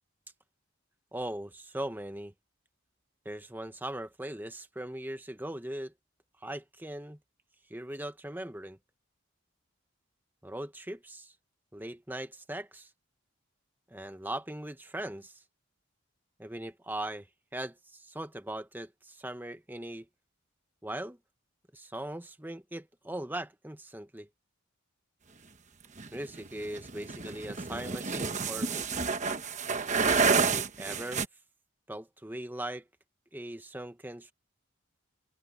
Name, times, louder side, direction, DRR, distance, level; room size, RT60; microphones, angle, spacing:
voice 1, 1.1-2.3 3.2-5.9 6.4-7.2 7.7-8.8 10.4-11.3 11.7-12.9 13.9-15.4 16.4-17.3 17.5-20.1 20.8-21.2 21.7-24.3 26.1-28.9 30.2-31.2 31.9-32.9 33.3-34.3, right 1 dB, 10° right, 1.0 m, -39 dB
sound 1, 26.0-31.3, right 5 dB, 35° right, 1.1 m, -29 dB
open air
head